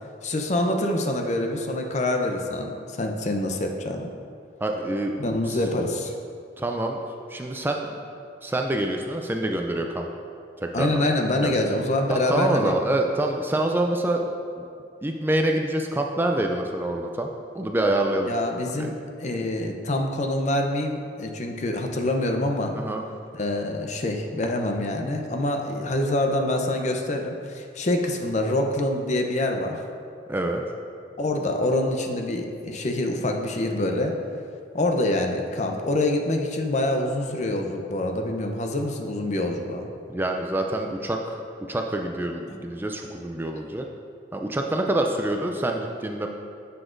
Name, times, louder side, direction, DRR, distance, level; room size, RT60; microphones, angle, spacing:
voice 1, 0.2-4.1 5.2-6.1 10.7-12.7 18.2-22.7 23.4-29.8 31.2-34.1 34.7-39.9, left 1 dB, 40° left, 3 dB, 0.6 m, -26 dB
voice 2, 4.6-5.1 5.5-5.6 6.6-7.0 7.3-7.9 8.4-10.1 10.6-11.1 11.4-11.5 12.1-14.3 14.6-14.7 15.0-17.3 17.5-18.3 18.7-18.9 22.7-23.0 30.3-30.6 40.1-41.4 41.7-43.9 44.3-46.3, right 1 dB, 10° right, 2 dB, 0.3 m, -26 dB
9.9 x 6.9 x 2.5 m, 2.4 s
head